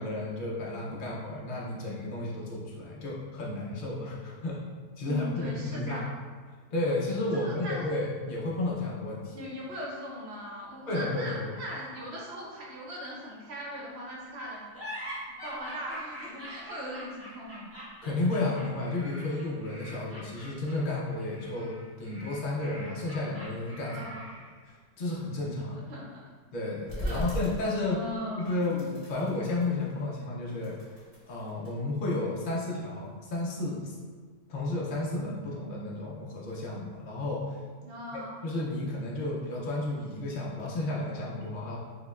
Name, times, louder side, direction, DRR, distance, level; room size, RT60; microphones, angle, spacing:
voice 1, 0.0-4.6 5.0-6.1 6.7-9.4 10.9-11.5 18.0-24.0 24.7-25.8 26.5-28.0 28.4-30.7 31.3-33.9 34.5-37.6 38.4-41.8, left 2 dB, 80° left, -4 dB, 0.4 m, -32 dB
voice 2, 5.1-6.0 7.3-7.9 9.3-14.7 15.4-17.7 23.9-24.3 25.9-26.2 27.0-27.2 27.9-28.6 37.8-38.4, equal, 60° right, -4 dB, 0.7 m, -39 dB
sound 1, 14.7-24.6, equal, 10° right, 0.8 m, -44 dB
sound 2, 26.9-28.2 28.5-30.1 30.5-31.7 32.3-33.5, equal, 25° left, 1.0 m, -39 dB
4.9 x 2.1 x 2.3 m, 1.5 s
omnidirectional pair, 1.6 m